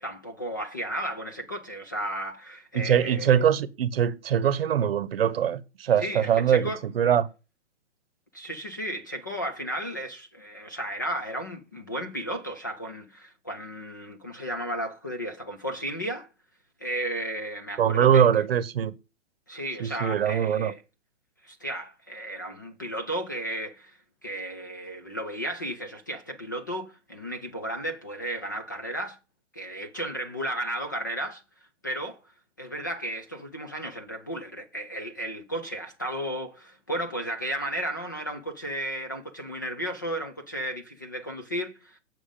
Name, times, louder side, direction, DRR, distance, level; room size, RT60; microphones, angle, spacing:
voice 1, 0.0-3.4 6.0-6.8 8.3-16.3 16.8-18.3 19.5-20.8 21.4-29.2 29.5-31.4 31.8-32.2 32.6-42.0, right 1 dB, 20° left, 0.4 m, -34 dB
voice 2, 2.7-7.3 17.8-18.9 19.8-20.7, right 9 dB, 55° right, 0.9 m, -23 dB
7.1 x 6.2 x 5.0 m
hypercardioid pair, 160°, 36 cm